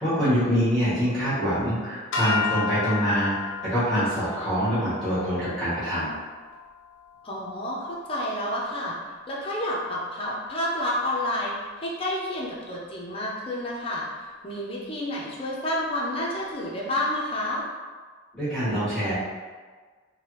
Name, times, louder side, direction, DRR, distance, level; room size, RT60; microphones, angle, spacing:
voice 1, 0.0-6.1 18.3-19.1, equal, 5° left, -14 dB, 1.2 m, -25 dB
sound 1, 2.1-8.5, left 5 dB, 80° left, 0.5 m, -34 dB
voice 2, 7.2-8.9 9.3-14.0 14.4-17.6, left 1 dB, 30° left, -4 dB, 0.6 m, -29 dB
3.3 x 2.2 x 3.0 m, 1.4 s
head